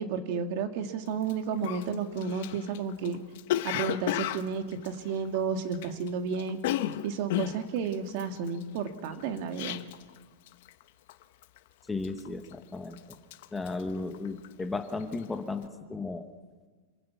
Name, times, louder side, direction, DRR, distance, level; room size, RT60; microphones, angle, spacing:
voice 1, 0.0-3.2 3.6-6.6 7.0-9.8, right 6 dB, 45° right, 7 dB, 1.9 m, -32 dB
Cough, 1.2-1.3 1.6-6.1 6.3-10.2 10.5-10.8 11.1-11.6 12.0-12.6 12.9-14.6 14.9-15.2, left 13 dB, 55° left, 0.9 m, -33 dB
voice 2, 11.9-13.0 13.5-16.3, left 3 dB, 10° left, 7 dB, 0.9 m, -35 dB
26.5 x 15.5 x 8.4 m, 1.5 s
supercardioid pair, 160°, 0 cm